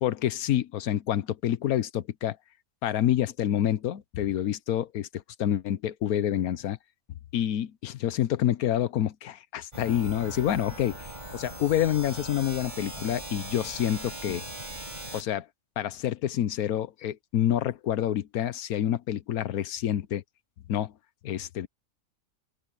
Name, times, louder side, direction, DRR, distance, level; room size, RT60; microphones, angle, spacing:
voice 1, 0.0-2.4 2.8-6.8 7.3-14.4 15.1-15.5 15.8-20.2 20.7-20.9 21.2-21.7, left 11 dB, 85° left, 1.3 m, -28 dB
sound 1, 9.7-15.2, right 1 dB, 30° right, 5.5 m, -40 dB
open air
omnidirectional pair, 1.5 m